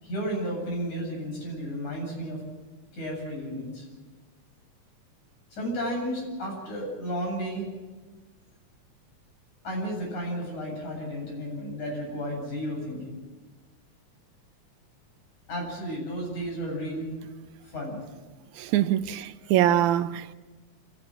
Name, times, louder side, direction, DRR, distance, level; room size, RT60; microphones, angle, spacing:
voice 1, 0.0-2.4 2.9-3.9 5.5-7.7 9.6-13.2 15.5-17.2 17.6-18.0, equal, 80° left, 9.6 m, -33 dB
voice 2, 18.6-20.3, right 12 dB, 80° right, 2.2 m, -24 dB
26.5 x 15.5 x 7.8 m
omnidirectional pair, 3.4 m